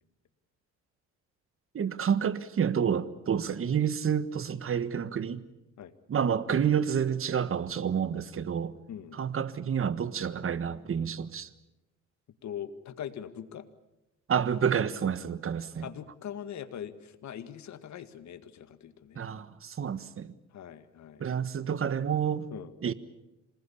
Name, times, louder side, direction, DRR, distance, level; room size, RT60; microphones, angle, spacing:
voice 1, 1.7-5.4 6.1-8.7 9.1-11.5 14.3-15.9 19.1-20.3 21.2-22.5 22.8-22.9, right 7 dB, 45° right, 1.4 m, -29 dB
voice 2, 8.9-9.2 12.4-13.7 15.8-19.3 20.5-21.3 22.5-22.7, left 9 dB, 65° left, 1.9 m, -42 dB
27.0 x 20.0 x 8.6 m
cardioid pair, 90°, 30 cm